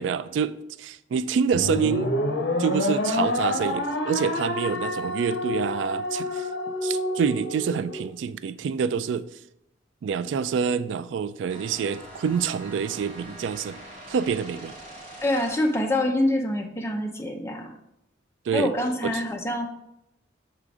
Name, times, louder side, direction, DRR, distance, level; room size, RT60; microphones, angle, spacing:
voice 1, 0.0-2.1 2.6-6.5 6.8-9.3 10.0-13.8 14.1-14.7 18.5-18.7 19.0-19.2, right 6 dB, 80° right, 0.3 m, -27 dB
sound 1, 1.5-8.1, left 1 dB, 70° left, 0.9 m, -28 dB
sound 2, 11.5-15.9, right 1 dB, 35° right, 2.3 m, -44 dB
voice 2, 15.2-17.7 18.5-19.7, left 1 dB, 15° left, 0.7 m, -25 dB
6.7 x 3.8 x 4.8 m
head